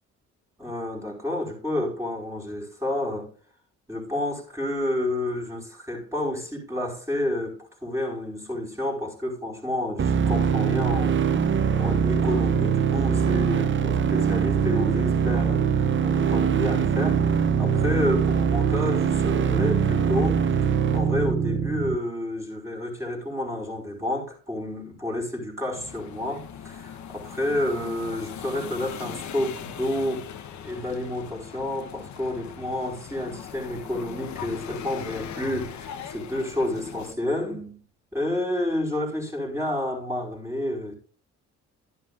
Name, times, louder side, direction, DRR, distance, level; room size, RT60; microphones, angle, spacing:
voice 1, 0.6-3.3 3.9-30.3 30.6-37.8 38.1-40.9, left 1 dB, 10° right, 4.7 m, -30 dB
sound 1, 10.0-22.0, right 7 dB, 40° right, 0.7 m, -22 dB
sound 2, 25.7-37.1, left 8 dB, 65° left, 1.0 m, -40 dB
12.0 x 10.5 x 2.5 m
cardioid pair, 90°, 30 cm